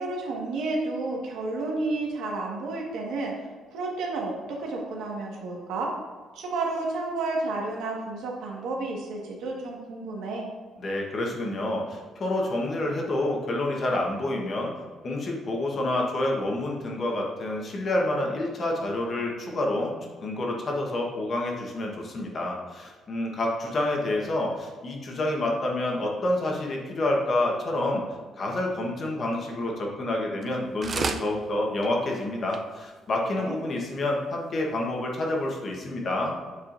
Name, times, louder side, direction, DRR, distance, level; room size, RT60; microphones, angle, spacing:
voice 1, 0.0-5.9 6.3-10.5 33.3-33.6, right 3 dB, 85° right, -1 dB, 1.4 m, -31 dB
voice 2, 10.8-14.7 15.0-19.9 20.2-28.0 28.4-36.4, left 1 dB, 35° left, -1 dB, 1.1 m, -28 dB
sound 1, 30.4-30.6 30.8-31.3 31.8-31.9 32.2-32.3 32.5-32.6 33.2-33.3, right 4 dB, 30° right, 0.3 m, -30 dB
8.5 x 4.8 x 2.5 m, 1.5 s
cardioid pair, 155°, 0 cm